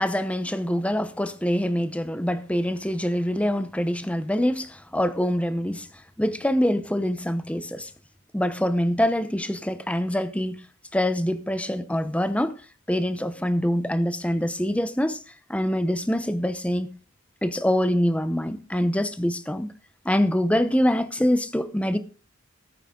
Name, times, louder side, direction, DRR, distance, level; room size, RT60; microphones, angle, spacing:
voice 1, 0.0-5.9 6.2-7.9 8.3-10.6 10.9-12.6 12.9-15.2 15.5-16.9 17.4-19.7 20.0-22.0, equal, 5° left, 0.8 m, -25 dB
15.5 x 9.0 x 3.8 m
head